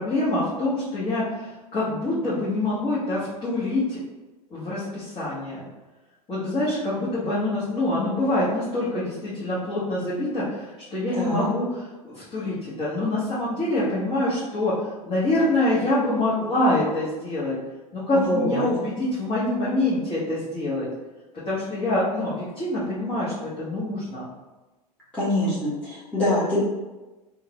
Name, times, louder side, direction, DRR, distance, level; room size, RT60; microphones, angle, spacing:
voice 1, 0.0-4.0 4.5-5.6 6.3-11.8 12.0-14.7 15.1-17.5 17.9-20.9 21.5-24.2, left 1 dB, 25° left, -10 dB, 1.2 m, -25 dB
voice 2, 11.1-11.5 18.1-18.7 25.1-26.6, left 1 dB, 5° left, -12 dB, 1.1 m, -24 dB
3.2 x 2.4 x 2.9 m, 1.1 s
figure-of-eight pair, 85°, 20 cm